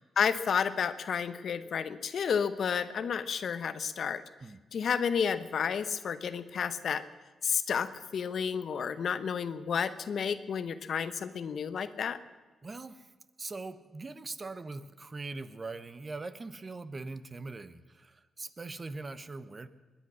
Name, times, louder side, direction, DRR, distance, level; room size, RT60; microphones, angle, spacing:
voice 1, 0.2-4.2 4.7-7.0 7.4-12.2, left 7 dB, 65° left, 12 dB, 0.8 m, -31 dB
voice 2, 12.6-13.1 13.4-19.7, right 3 dB, 35° right, 13 dB, 0.9 m, -41 dB
20.5 x 10.0 x 6.2 m, 1.2 s
cardioid pair, 70°, 0 cm